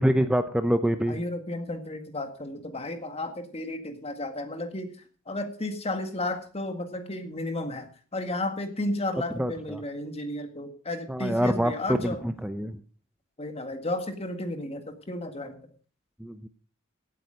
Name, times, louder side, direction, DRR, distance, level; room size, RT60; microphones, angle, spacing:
voice 1, 0.0-1.2 9.4-9.8 11.1-12.8 16.2-16.5, equal, 5° right, 9 dB, 0.6 m, -26 dB
voice 2, 1.1-5.0 5.3-12.2 13.4-15.7, left 2 dB, 30° left, 7 dB, 1.9 m, -33 dB
16.5 x 8.9 x 5.1 m, 0.39 s
head